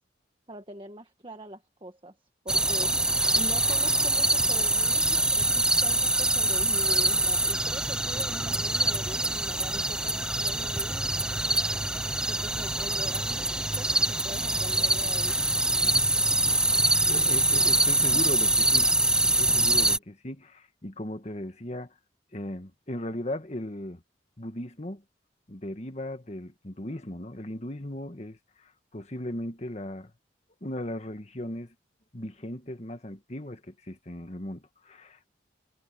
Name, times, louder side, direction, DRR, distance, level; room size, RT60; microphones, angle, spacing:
voice 1, 0.5-2.1 2.4-3.0 3.3-15.4, right 1 dB, 30° right, 1.5 m, -43 dB
sound 1, 2.5-20.0, right 2 dB, 5° right, 0.8 m, -25 dB
voice 2, 17.0-18.9 19.2-21.9 22.3-24.0 24.4-25.0 25.5-28.4 28.9-30.1 30.6-31.7 32.1-35.3, left 1 dB, 35° left, 1.6 m, -37 dB
head